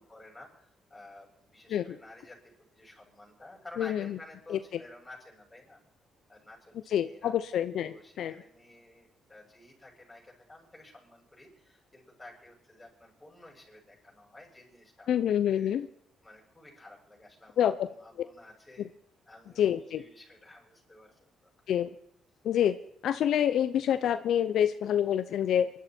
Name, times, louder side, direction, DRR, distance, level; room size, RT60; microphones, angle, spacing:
voice 1, 0.0-5.8 6.3-7.3 7.8-15.2 15.5-15.8 16.2-18.9 19.2-21.3, left 2 dB, 10° left, -2 dB, 6.9 m, -52 dB
voice 2, 3.8-4.2 4.5-4.6 6.9-8.3 15.1-15.9 17.6-17.9 18.8-18.9 19.6-20.0 21.7-21.9 22.4-22.8 23.0-25.7, left 10 dB, 75° left, 11 dB, 0.6 m, -27 dB
24.0 x 12.0 x 4.4 m, 0.73 s
cardioid pair, 90°, 0 cm